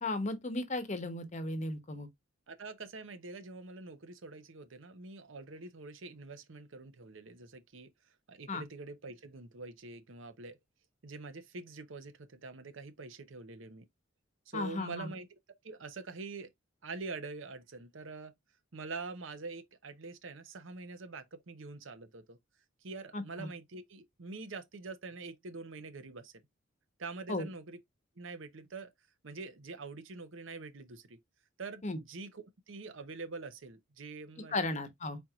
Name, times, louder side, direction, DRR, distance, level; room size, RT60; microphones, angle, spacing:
voice 1, 0.0-2.1 8.5-8.6 14.5-15.1 23.1-23.5 27.3-27.5 31.8-32.0 34.5-35.2, left 2 dB, 35° left, 0.9 m, -35 dB
voice 2, 2.5-7.9 8.3-10.6 11.0-13.9 14.5-15.4 15.6-16.5 16.8-18.3 18.7-22.4 22.8-26.3 27.0-27.8 28.2-28.9 29.2-31.2 31.6-34.8, right 3 dB, 70° right, 0.8 m, -45 dB
4.5 x 4.3 x 2.4 m
head